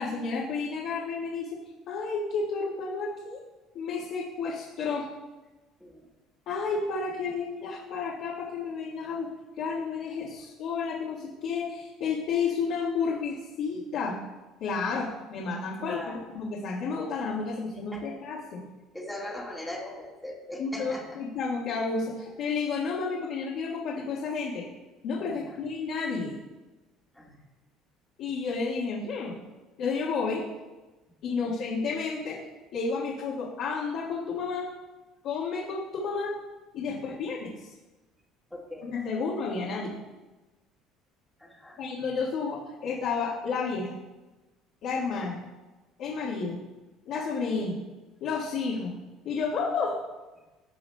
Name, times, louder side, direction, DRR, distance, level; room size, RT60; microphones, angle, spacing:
voice 1, 0.0-1.5 1.9-3.4 3.7-5.1 6.5-9.3 9.6-14.1 14.6-18.6 20.6-24.6 25.0-26.3 28.2-29.4 29.8-30.4 31.2-32.4 32.7-34.7 35.2-36.3 36.7-37.7 38.9-39.9 41.8-44.0 44.8-45.4 46.0-46.6 47.0-47.7 48.2-48.9 49.2-50.0, left 4 dB, 70° left, -7 dB, 1.5 m, -31 dB
voice 2, 15.8-16.2 17.9-18.1 18.9-21.2 25.3-25.6 27.1-27.4 31.3-31.5 36.9-37.2 38.5-38.9 41.4-41.8, left 1 dB, 5° left, -3 dB, 1.6 m, -41 dB
14.0 x 4.9 x 2.2 m, 1.2 s
supercardioid pair, 100°, 0 cm